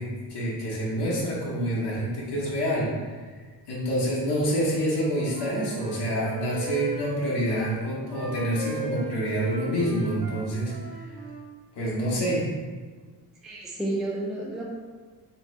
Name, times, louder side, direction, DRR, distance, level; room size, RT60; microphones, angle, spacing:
voice 1, 0.0-3.2 3.7-10.7 11.0-11.1 11.7-12.4, right 1 dB, 85° left, -6 dB, 1.2 m, -27 dB
Wind instrument woodwind instrument, 4.7-7.6 8.1-11.5, right 1 dB, 65° right, 1.0 m, -37 dB
voice 2, 13.4-14.7, right 1 dB, ahead, -3 dB, 0.3 m, -31 dB
3.7 x 3.1 x 3.1 m, 1.4 s
wide cardioid pair, 155°, 40 cm